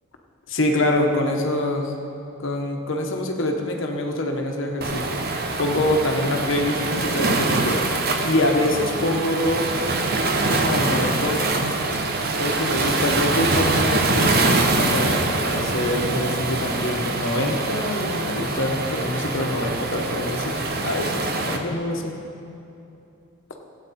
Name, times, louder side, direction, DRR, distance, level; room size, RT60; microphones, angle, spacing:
voice 1, 0.5-1.9 2.4-5.2 5.6-9.7 10.5-11.6 12.4-22.1, left 1 dB, 70° left, 2 dB, 1.3 m, -25 dB
Waves surf, 4.8-21.6, right 2 dB, 50° right, 0.8 m, -24 dB
16.0 x 8.6 x 4.3 m, 2.7 s
head